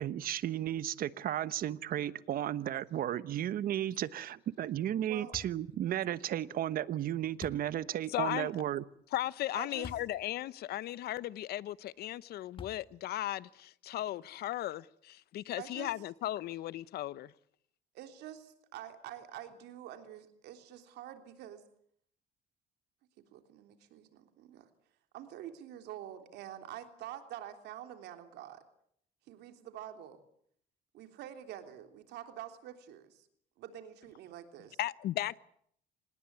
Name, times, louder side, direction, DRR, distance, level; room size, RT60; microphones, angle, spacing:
voice 1, 0.0-8.8, right 11 dB, 60° right, 1.2 m, -34 dB
voice 2, 5.0-5.3 9.5-9.9 15.6-15.9 17.9-21.6 23.2-24.7 25.1-28.6 29.3-30.2 30.9-33.3 33.6-34.8, right 11 dB, 80° right, 3.5 m, -47 dB
sound 1, 5.3-5.7 7.4-7.7 9.8-10.1 10.7-10.8 12.6-13.1, left 5 dB, 30° left, 1.7 m, -46 dB
voice 3, 8.1-8.5 9.1-17.3 34.8-35.4, left 14 dB, 70° left, 0.9 m, -36 dB
26.5 x 19.5 x 8.3 m
cardioid pair, 110°, 17 cm